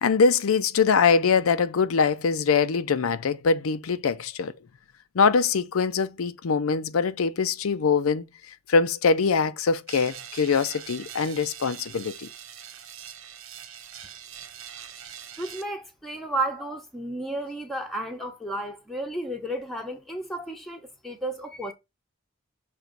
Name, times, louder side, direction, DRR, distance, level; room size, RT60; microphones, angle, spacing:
voice 1, 0.0-4.5 5.1-8.2 8.7-12.3, left 5 dB, 80° left, 0.5 m, -23 dB
sound 1, 9.9-15.6, right 9 dB, 75° right, 1.0 m, -42 dB
voice 2, 15.4-21.7, right 1 dB, ahead, 0.8 m, -32 dB
5.9 x 3.0 x 5.2 m
head